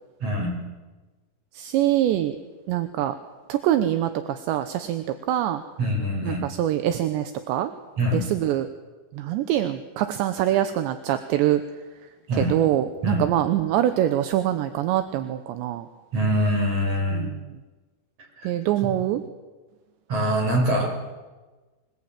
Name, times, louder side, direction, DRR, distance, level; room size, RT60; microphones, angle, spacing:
voice 1, 0.2-0.5 5.8-6.4 8.0-8.3 12.3-12.6 13.0-13.3 16.1-17.3 18.4-18.5 20.1-21.0, equal, 35° right, 1 dB, 7.7 m, -24 dB
voice 2, 1.5-2.4 2.7-3.1 3.5-5.6 6.2-7.7 8.1-8.7 9.2-11.6 12.3-15.9 17.1-17.4 18.4-19.2, right 12 dB, 80° right, 9 dB, 3.2 m, -24 dB
25.0 x 21.0 x 9.0 m, 1.3 s
omnidirectional pair, 5.3 m